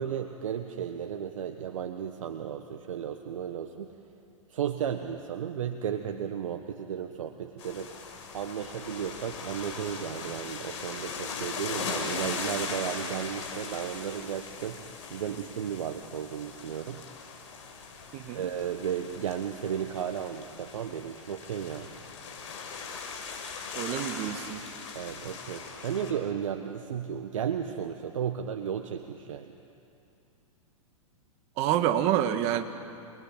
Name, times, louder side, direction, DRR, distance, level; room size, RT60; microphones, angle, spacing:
voice 1, 0.0-3.9 4.5-7.9 8.3-17.0 18.3-21.9 24.9-29.5, right 8 dB, 70° right, 6 dB, 1.4 m, -34 dB
sound 1, 7.6-26.1, left 5 dB, 60° left, 5.8 m, -39 dB
voice 2, 18.1-18.4 23.8-24.6 31.6-32.6, right 11 dB, 40° right, 8 dB, 1.9 m, -27 dB
28.5 x 21.5 x 9.1 m, 2.6 s
hypercardioid pair, 115°, 17 cm